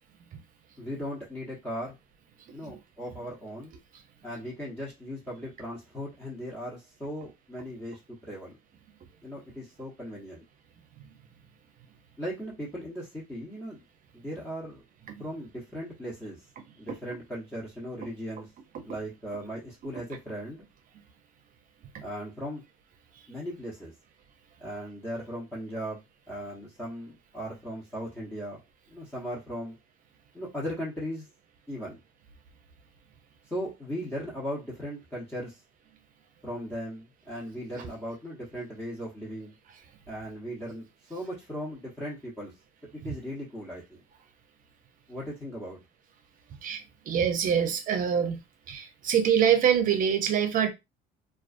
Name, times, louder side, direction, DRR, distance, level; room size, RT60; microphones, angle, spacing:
voice 1, 0.8-2.0 2.5-3.7 4.2-8.6 9.2-10.4 12.2-13.8 14.1-14.8 15.2-16.4 16.8-18.5 18.8-20.6 22.0-22.6 23.3-23.9 24.6-26.0 26.3-28.6 28.9-29.8 30.3-31.3 31.7-32.0 33.5-35.6 36.4-39.5 40.1-42.5 42.9-44.0 45.1-45.8, equal, 15° left, 1.0 m, -37 dB
voice 2, 46.6-48.4 48.7-50.7, right 8 dB, 55° right, 0.6 m, -25 dB
2.4 x 2.3 x 2.4 m
supercardioid pair, 80°, 17 cm